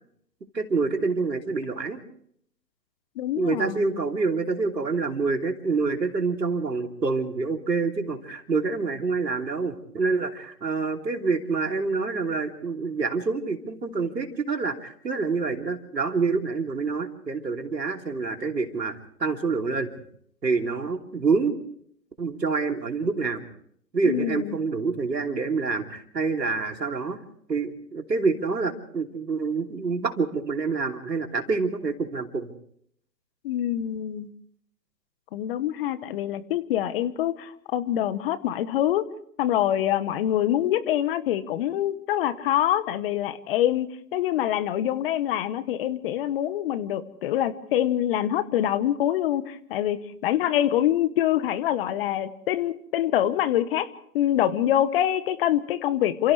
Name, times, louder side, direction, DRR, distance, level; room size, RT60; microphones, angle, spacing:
voice 1, 0.5-2.0 3.3-19.9 20.4-21.5 22.2-23.4 23.9-27.2 27.5-32.5, right 4 dB, 90° right, 4 dB, 3.2 m, -27 dB
voice 2, 3.2-3.9 24.0-24.5 33.4-34.3 35.3-39.0 39.4-53.9 54.1-56.3, left 12 dB, 35° left, 15 dB, 1.2 m, -25 dB
29.0 x 27.5 x 3.3 m, 0.65 s
hypercardioid pair, 130°, 48 cm